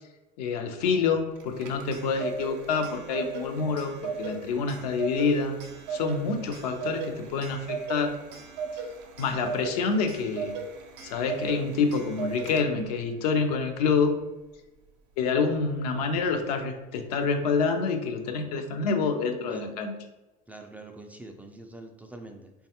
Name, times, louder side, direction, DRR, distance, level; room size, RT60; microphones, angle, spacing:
voice 1, 0.4-3.9 4.2-5.6 5.9-8.2 9.2-10.5 11.0-14.1 15.2-20.0, left 5 dB, 80° left, 4 dB, 0.5 m, -27 dB
Clock, 1.4-13.0, right 5 dB, 60° right, 0.5 m, -37 dB
voice 2, 20.5-22.7, right 2 dB, 5° right, 4 dB, 0.3 m, -45 dB
3.2 x 2.3 x 2.8 m, 1.0 s
hypercardioid pair, 80°, 20 cm